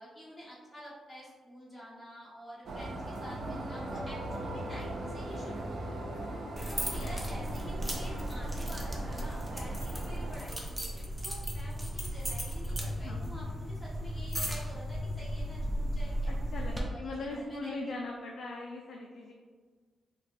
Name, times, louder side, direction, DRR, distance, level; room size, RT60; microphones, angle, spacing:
voice 1, 0.0-6.0 6.7-16.4 16.9-17.9, equal, 20° left, -8 dB, 1.3 m, -48 dB
sound 1, 2.7-10.4, right 1 dB, 70° right, 0.5 m, -39 dB
voice 2, 6.4-7.1 13.0-13.3 16.3-19.3, left 2 dB, 70° left, 0 dB, 0.3 m, -41 dB
sound 2, 6.6-16.8, equal, 10° right, 0.5 m, -35 dB
3.8 x 2.2 x 2.5 m, 1.5 s
cardioid pair, 95°, 0 cm